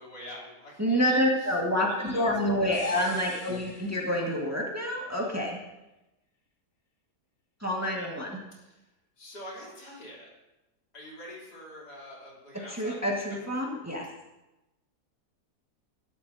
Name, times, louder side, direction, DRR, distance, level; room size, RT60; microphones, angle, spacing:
voice 1, 0.0-1.6 1.9-2.8 3.1-3.6 5.2-5.3 7.9-8.1 8.5-8.8 9.2-10.3 10.9-13.0 13.3-13.4, left 1 dB, 80° left, -4 dB, 4.4 m, -46 dB
voice 2, 0.8-5.6 7.6-8.4 12.7-14.1, equal, 10° right, -2 dB, 2.0 m, -28 dB
sound 1, 2.7-4.6 4.9-5.0, left 3 dB, 35° left, 1.2 m, -46 dB
20.5 x 12.5 x 2.9 m, 0.98 s
omnidirectional pair, 1.7 m